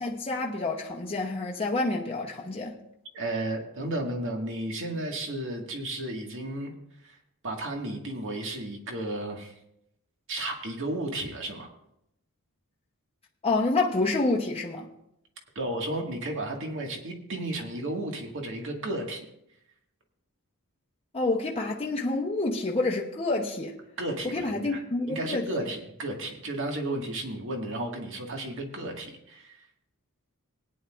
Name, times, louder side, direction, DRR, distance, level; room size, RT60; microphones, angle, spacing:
voice 1, 0.0-2.8 13.4-14.9 21.1-23.7 24.3-25.5, left 2 dB, 25° left, 0.9 m, -28 dB
voice 2, 3.1-6.7 7.0-7.2 7.4-9.5 10.3-11.7 15.6-19.3 24.0-24.8 25.1-29.6, right 1 dB, 60° right, 1.9 m, -33 dB
19.0 x 9.7 x 2.5 m
head